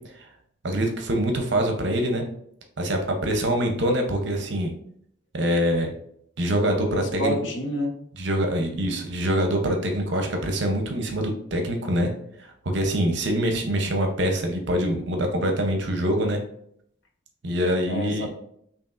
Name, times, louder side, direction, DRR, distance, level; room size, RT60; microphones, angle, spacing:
voice 1, 0.6-2.2 2.8-4.7 5.3-5.9 6.4-7.4 8.2-12.1 12.7-16.4 17.4-18.3, equal, 55° right, 3 dB, 0.7 m, -24 dB
voice 2, 6.8-8.0 17.9-18.3, left 1 dB, 65° left, 2 dB, 0.7 m, -29 dB
5.1 x 2.9 x 2.5 m, 0.69 s
head